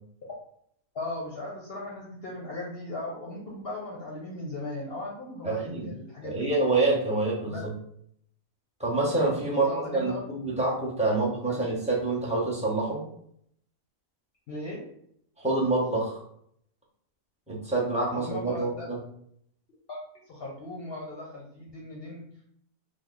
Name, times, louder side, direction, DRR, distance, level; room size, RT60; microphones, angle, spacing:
voice 1, 0.9-6.5 7.5-7.7 9.5-10.2 11.5-11.6 14.5-14.8 18.1-18.9 19.9-20.0 20.3-22.2, left 1 dB, 55° left, -3 dB, 0.7 m, -37 dB
voice 2, 5.4-5.9 6.2-7.7 8.8-13.0 15.4-16.2 17.5-19.0, right 2 dB, 10° right, -6 dB, 0.5 m, -27 dB
3.2 x 2.0 x 3.8 m, 0.69 s
omnidirectional pair, 1.4 m